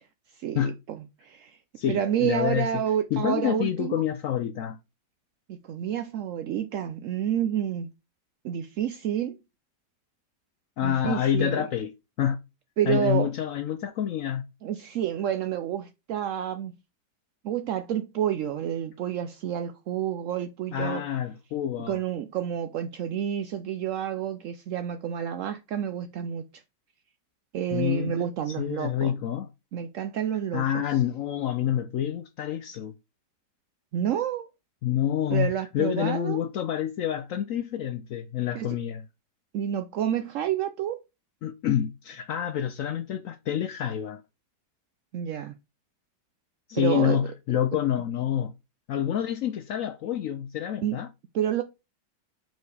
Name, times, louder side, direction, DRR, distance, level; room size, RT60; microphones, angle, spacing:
voice 1, 0.4-1.6 1.9-4.0 5.5-7.9 8.4-9.4 10.8-11.7 12.8-13.3 14.6-16.7 17.4-21.0 21.9-26.4 27.5-29.1 29.7-30.8 33.9-34.5 35.3-36.4 38.5-38.7 39.5-41.0 45.1-45.5 46.8-47.3 50.8-51.0 51.3-51.6, right 10 dB, 75° right, 0.7 m, -29 dB
voice 2, 1.8-2.7 3.1-4.8 10.8-11.9 12.2-12.4 12.9-14.5 20.7-22.0 27.7-28.2 28.5-29.5 30.5-32.9 34.8-39.1 41.4-44.2 46.7-48.5 48.9-51.1, left 10 dB, 70° left, 0.7 m, -27 dB
5.2 x 4.5 x 4.7 m
omnidirectional pair, 1.9 m